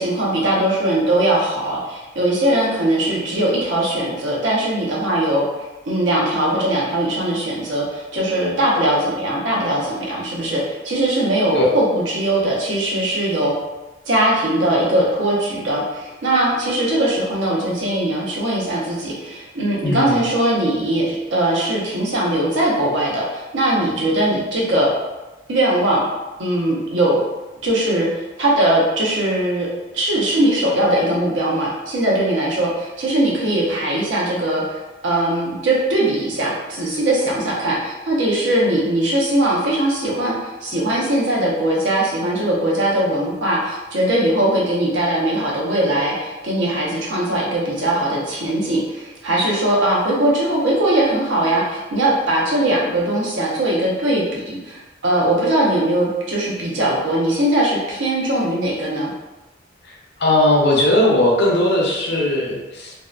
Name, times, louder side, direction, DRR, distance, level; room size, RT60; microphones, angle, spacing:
voice 1, 0.0-5.4 5.9-13.5 14.1-24.9 25.5-26.0 26.4-27.2 27.6-28.1 28.4-29.7 29.9-59.1, right 1 dB, 70° right, -4 dB, 0.7 m, -20 dB
voice 2, 19.8-20.2 59.9-60.0 60.2-62.9, left 1 dB, 60° left, -2 dB, 0.5 m, -18 dB
2.7 x 2.1 x 2.4 m, 1.1 s
head